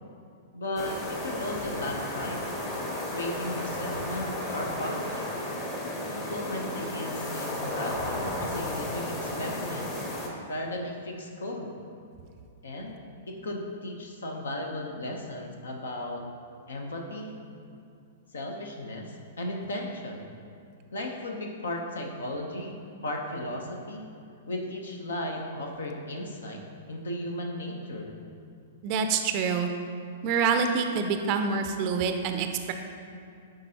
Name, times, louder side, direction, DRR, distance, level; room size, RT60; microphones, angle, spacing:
voice 1, 0.5-2.5 3.1-5.2 6.1-9.9 10.5-11.7 12.6-13.0 13.3-16.2 16.7-17.4 18.3-20.3 20.9-24.1 24.5-26.6 26.9-28.2, left 1 dB, 75° left, 1 dB, 0.7 m, -35 dB
sound 1, 0.8-10.3, left 1 dB, 30° left, 1.1 m, -33 dB
voice 2, 28.8-29.7 30.2-32.7, right 5 dB, 45° right, 6 dB, 0.4 m, -26 dB
10.0 x 3.8 x 2.8 m, 2.5 s
hypercardioid pair, 110°, 0 cm